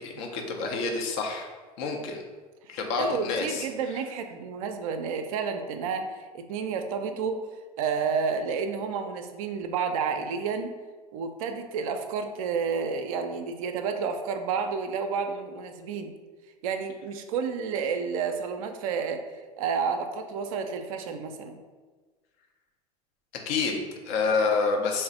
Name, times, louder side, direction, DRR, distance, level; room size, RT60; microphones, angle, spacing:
voice 1, 0.0-1.5 1.8-2.2 2.7-3.7 23.5-25.0, left 4 dB, 55° left, 2 dB, 0.6 m, -28 dB
voice 2, 2.7-7.5 7.8-10.7 11.1-16.1 16.6-19.2 19.6-21.6, right 5 dB, 60° right, 7 dB, 0.4 m, -30 dB
3.9 x 2.1 x 3.8 m, 1.4 s
figure-of-eight pair, 80°, 20 cm